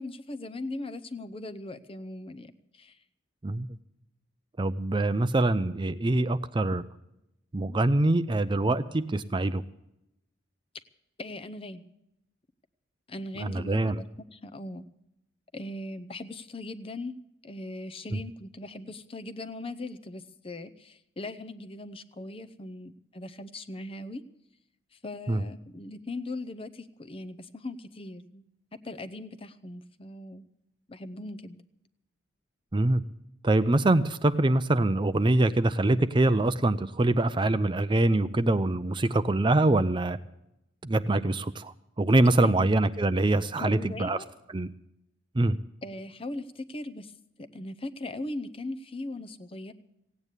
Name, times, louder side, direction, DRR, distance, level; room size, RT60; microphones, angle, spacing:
voice 1, 0.0-3.0 11.2-11.9 13.1-14.1 14.3-14.8 15.5-24.2 24.9-28.4 28.8-30.5 30.9-31.6 42.4-42.7 43.6-44.3 45.8-47.1 47.4-49.7, left 2 dB, 30° left, 10 dB, 0.7 m, -39 dB
voice 2, 4.6-6.8 7.5-9.6 13.4-14.0 18.1-18.2 25.3-25.4 32.7-33.0 33.4-40.2 40.8-44.2 44.5-44.7 45.3-45.6, right 2 dB, 25° right, 12 dB, 0.5 m, -24 dB
16.5 x 9.1 x 8.2 m, 0.84 s
head